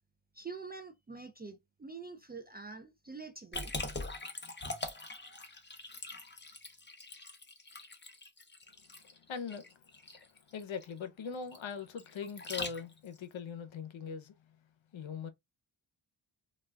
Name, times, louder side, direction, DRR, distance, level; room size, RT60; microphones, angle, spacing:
voice 1, 0.3-3.7, right 4 dB, 25° right, 0.3 m, -46 dB
Liquid, 3.5-13.2, left 2 dB, 20° left, 0.7 m, -43 dB
voice 2, 8.7-14.6 14.9-15.3, left 6 dB, 65° left, 0.7 m, -42 dB
2.3 x 2.2 x 3.3 m
cardioid pair, 70°, 49 cm